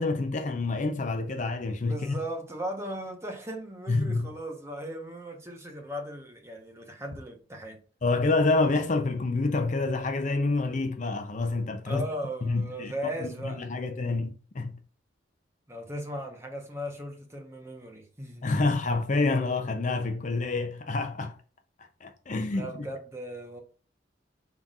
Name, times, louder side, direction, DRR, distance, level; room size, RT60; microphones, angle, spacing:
voice 1, 0.0-2.2 3.9-4.3 8.0-12.1 12.4-12.9 13.2-14.8 18.4-21.3 22.0-22.7, left 3 dB, 40° left, 0.5 m, -27 dB
voice 2, 1.8-7.8 11.9-13.7 15.7-18.5 22.5-23.6, equal, 15° right, 1.0 m, -37 dB
5.7 x 3.6 x 2.4 m
head